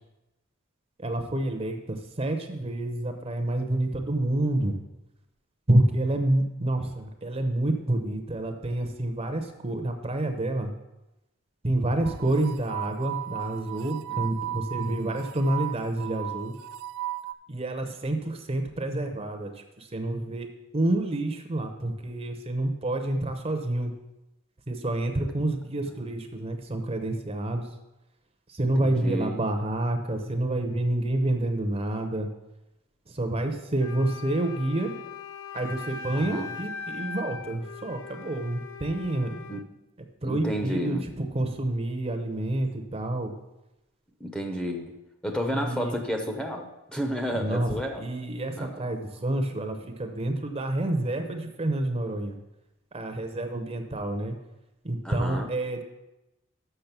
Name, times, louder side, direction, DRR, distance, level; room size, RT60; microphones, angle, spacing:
voice 1, 1.0-4.8 5.7-10.7 11.6-16.5 17.5-19.5 19.9-20.5 20.7-23.9 24.7-27.7 28.6-32.3 33.2-34.9 35.5-39.3 40.2-43.3 45.5-46.0 47.4-47.7 48.0-52.4 52.9-54.3 54.8-55.8, right 1 dB, 30° right, 6 dB, 0.7 m, -28 dB
sound 1, 12.0-17.3, right 13 dB, 70° right, 0.3 m, -35 dB
voice 2, 14.1-14.6 25.9-26.1 28.6-29.4 36.2-36.6 39.5-39.7 40.2-41.1 44.2-45.0 45.2-48.0 48.6-48.9 55.0-55.5, equal, 5° left, 3 dB, 0.7 m, -32 dB
Wind instrument woodwind instrument, 33.8-39.7, left 5 dB, 80° left, 0.5 m, -40 dB
6.8 x 6.3 x 5.9 m, 0.95 s
head